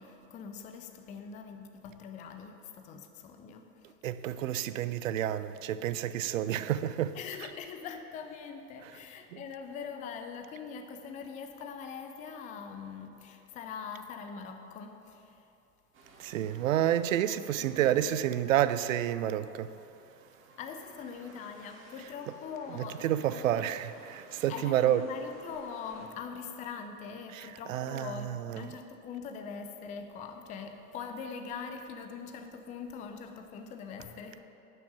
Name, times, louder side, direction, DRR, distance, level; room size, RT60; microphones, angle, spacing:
voice 1, 0.0-4.0 7.1-15.5 17.6-18.2 20.6-23.7 24.5-34.4, left 6 dB, 15° left, 0.5 m, -43 dB
voice 2, 4.0-7.2 16.2-19.7 23.0-25.0 27.3-28.1 28.5-28.7, right 11 dB, 55° right, 0.5 m, -29 dB
sound 1, 15.9-26.1, right 2 dB, 25° right, 1.7 m, -56 dB
10.5 x 5.9 x 7.6 m
figure-of-eight pair, 85°, 47 cm